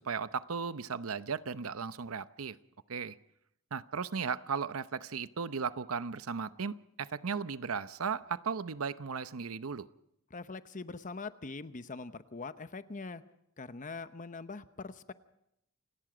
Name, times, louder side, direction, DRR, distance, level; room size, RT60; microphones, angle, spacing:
voice 1, 0.0-2.6 2.9-3.2 3.7-9.9, right 5 dB, 80° right, 14 dB, 0.8 m, -36 dB
voice 2, 10.3-13.2 13.6-15.1, left 3 dB, 40° left, 12 dB, 0.9 m, -43 dB
28.0 x 18.5 x 5.1 m, 0.78 s
head